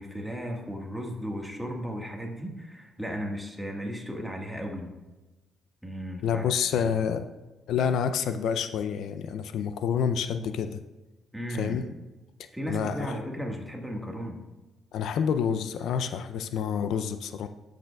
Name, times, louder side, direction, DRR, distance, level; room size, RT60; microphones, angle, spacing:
voice 1, 0.0-4.9 5.8-6.8 11.3-11.9 12.5-14.4, equal, ahead, 0 dB, 1.5 m, -35 dB
voice 2, 6.2-7.2 7.7-10.8 11.5-11.9 12.7-13.2 14.9-17.5, left 7 dB, 75° left, 10 dB, 0.4 m, -28 dB
11.5 x 6.5 x 2.3 m, 1.1 s
cardioid pair, 90°, 0 cm